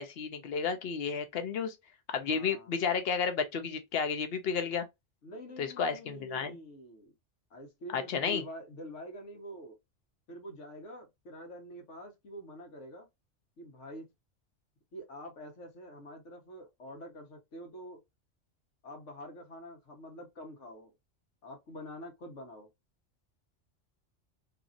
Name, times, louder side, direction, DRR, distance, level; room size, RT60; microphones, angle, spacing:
voice 1, 0.0-1.8 2.1-4.8 5.6-6.6 7.9-8.4, left 6 dB, 60° left, 0.8 m, -32 dB
voice 2, 2.2-2.7 5.2-7.1 7.5-9.8 10.3-13.1 13.6-14.1 14.9-18.0 18.8-20.9 21.4-22.7, equal, 85° left, 1.3 m, -46 dB
2.9 x 2.6 x 2.4 m
omnidirectional pair, 1.2 m